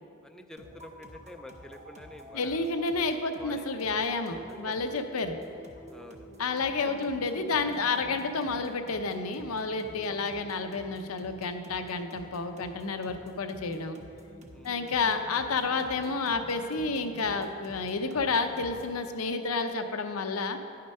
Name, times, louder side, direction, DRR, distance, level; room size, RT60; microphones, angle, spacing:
voice 1, 0.2-2.7 3.4-3.7 4.7-4.8 5.9-6.3 6.8-7.1 10.1-10.5 14.5-14.8, left 1 dB, 5° left, 5 dB, 0.4 m, -48 dB
sound 1, 0.6-19.0, right 1 dB, 35° right, 1.0 m, -49 dB
voice 2, 2.3-5.4 6.4-14.0 14.6-20.6, left 4 dB, 90° left, 7 dB, 0.7 m, -30 dB
10.5 x 6.6 x 5.4 m, 2.5 s
head